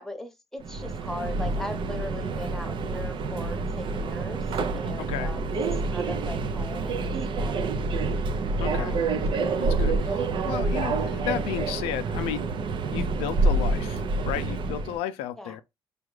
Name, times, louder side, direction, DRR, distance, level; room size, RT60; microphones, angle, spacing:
voice 1, 0.0-4.5 4.7-5.5 5.9-7.7 8.5-9.0 15.4-15.5, left 1 dB, 5° left, 1.0 m, -39 dB
Subway metro underground, 0.6-15.0, right 3 dB, 60° right, 0.5 m, -27 dB
voice 2, 5.0-5.3 8.6-9.0 9.3-12.5 12.9-15.6, left 11 dB, 90° left, 0.4 m, -33 dB
4.8 x 2.3 x 3.1 m
supercardioid pair, 65°, 10 cm